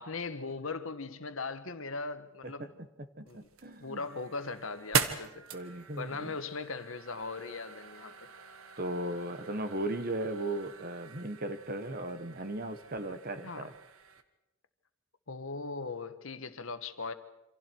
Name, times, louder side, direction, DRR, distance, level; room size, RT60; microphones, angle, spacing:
voice 1, 0.0-2.7 3.2-3.5 3.8-5.6 6.0-8.1 13.4-13.7 15.3-17.1, left 4 dB, 75° left, 9 dB, 1.5 m, -39 dB
voice 2, 3.2-4.0 5.5-6.3 8.8-13.7, right 1 dB, 45° right, 10 dB, 1.4 m, -37 dB
sound 1, 3.3-14.2, right 6 dB, 90° right, 1.5 m, -40 dB
28.0 x 26.0 x 4.7 m, 1.0 s
head